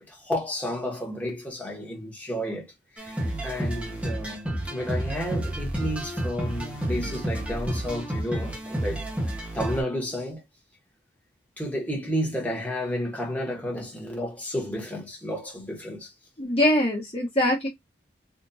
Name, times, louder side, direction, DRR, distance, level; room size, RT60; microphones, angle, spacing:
voice 1, 0.0-9.1 9.5-10.4 11.6-16.1, equal, 10° left, 1.2 m, -32 dB
sound 1, 3.0-9.8, right 1 dB, 5° right, 0.8 m, -30 dB
voice 2, 16.4-17.7, left 1 dB, 30° left, 1.2 m, -23 dB
3.7 x 2.5 x 2.7 m
head